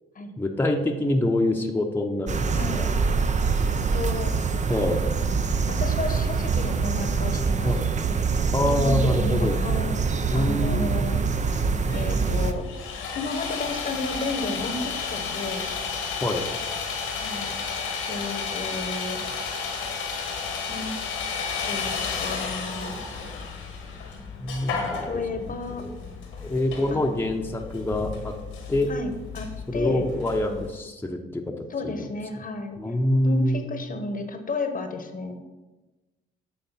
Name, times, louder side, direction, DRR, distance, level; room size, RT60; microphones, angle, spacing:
voice 1, 0.4-2.9 4.7-5.0 7.6-7.8 8.5-9.6 10.3-11.1 16.2-16.5 24.4-25.2 25.8-26.0 26.4-28.3 28.7-28.9 29.7-31.5 31.8-32.1 32.8-33.7, left 1 dB, 10° left, 1 dB, 0.8 m, -25 dB
sound 1, 2.3-12.5, right 5 dB, 35° right, 0.6 m, -24 dB
voice 2, 2.5-2.9 3.7-4.3 5.7-7.7 8.7-10.0 10.3-11.2 11.9-12.6 13.1-15.7 17.2-17.5 18.1-19.2 20.7-20.9 21.6-22.9 25.0-25.8 28.9-30.0 31.7-32.8 33.2-35.4, left 3 dB, 40° left, 7 dB, 1.0 m, -32 dB
Sawing, 11.3-30.7, left 5 dB, 80° left, 1.4 m, -33 dB
8.2 x 3.3 x 5.6 m, 1.2 s
supercardioid pair, 55°, 21 cm